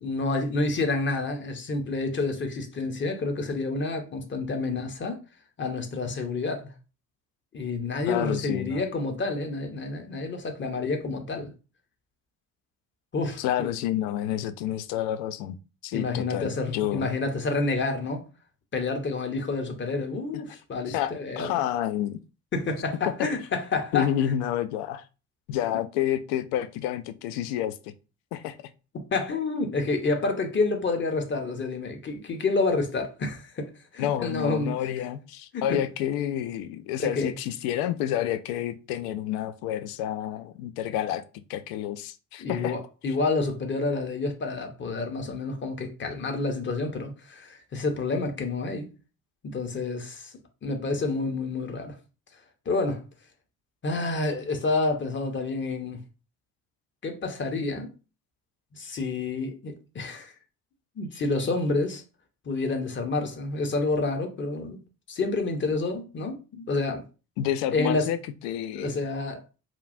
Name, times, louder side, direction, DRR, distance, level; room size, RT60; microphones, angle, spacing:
voice 1, 0.0-5.2 5.6-6.7 7.5-11.5 13.1-13.7 15.9-18.2 18.7-21.6 22.5-24.1 28.9-34.8 35.5-35.8 37.0-37.3 42.4-48.9 49.4-50.3 50.6-52.0 52.7-53.0 53.8-56.0 57.0-57.9 58.7-60.3 61.0-62.0 62.4-64.8 65.1-67.0 67.7-68.1 68.7-69.4, left 3 dB, 25° left, 0.8 m, -29 dB
voice 2, 8.1-8.9 13.4-17.1 20.3-20.4 20.9-22.2 23.1-23.2 23.9-25.0 25.5-27.9 28.3-28.6 34.0-41.2 41.5-42.8 67.4-68.2 68.4-68.9, left 11 dB, 60° left, 0.5 m, -29 dB
3.0 x 2.3 x 2.5 m
figure-of-eight pair, 50°, 43 cm